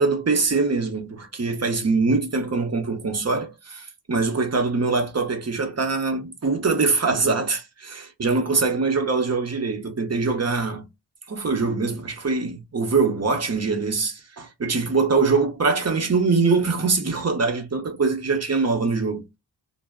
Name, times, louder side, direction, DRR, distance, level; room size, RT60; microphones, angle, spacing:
voice 1, 0.0-10.8 11.3-19.2, right 4 dB, 35° right, 0.8 m, -23 dB
2.0 x 2.0 x 3.5 m
cardioid pair, 50°, 45 cm